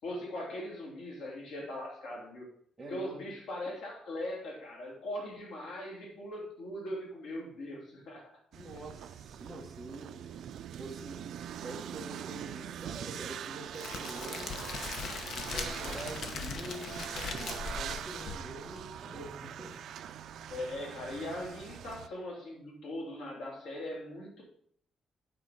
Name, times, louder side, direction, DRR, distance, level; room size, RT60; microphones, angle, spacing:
voice 1, 0.0-2.5 2.9-8.2 8.7-8.8 15.6-16.1 20.5-24.4, left 1 dB, 85° left, -1 dB, 3.3 m, -40 dB
voice 2, 2.8-3.3 8.5-10.3 10.8-14.6 15.3-19.8, right 2 dB, 10° right, -3 dB, 1.3 m, -45 dB
sound 1, 8.5-22.1, right 9 dB, 70° right, 0.4 m, -43 dB
Crackle, 13.7-18.8, left 5 dB, 60° left, 1.0 m, -40 dB
8.7 x 5.0 x 5.7 m, 0.63 s
cardioid pair, 175°, 0 cm